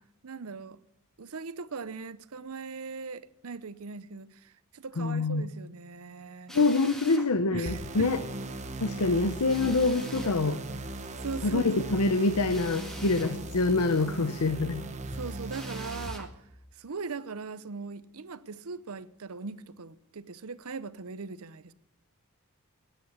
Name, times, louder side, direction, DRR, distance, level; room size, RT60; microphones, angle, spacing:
voice 1, 0.2-0.8 1.2-6.6 7.5-8.2 11.1-11.7 15.1-16.4 16.7-21.7, right 4 dB, 75° right, 0.7 m, -40 dB
voice 2, 5.0-5.4 6.5-8.2 8.8-10.6 11.4-14.8, left 3 dB, 85° left, 0.8 m, -26 dB
Drill, 6.5-7.3 9.5-10.4 12.5-13.4 15.5-16.3, equal, ahead, 1.8 m, -45 dB
sound 1, 7.7-16.1, right 2 dB, 30° right, 1.3 m, -38 dB
15.5 x 10.5 x 7.9 m
head